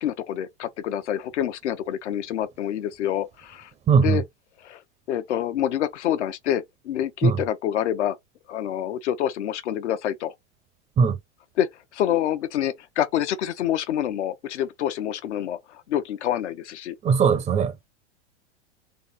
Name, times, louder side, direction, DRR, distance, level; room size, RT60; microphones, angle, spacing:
voice 1, 0.0-3.7 4.0-4.2 4.6-4.8 5.1-8.2 8.5-10.3 11.6-15.6 15.9-16.9, left 11 dB, 75° left, 0.9 m, -27 dB
voice 2, 3.9-4.2 7.2-7.4 11.0-11.2 17.0-17.9, right 6 dB, 15° right, 0.4 m, -19 dB
4.0 x 3.0 x 4.2 m
hypercardioid pair, 120°, 35 cm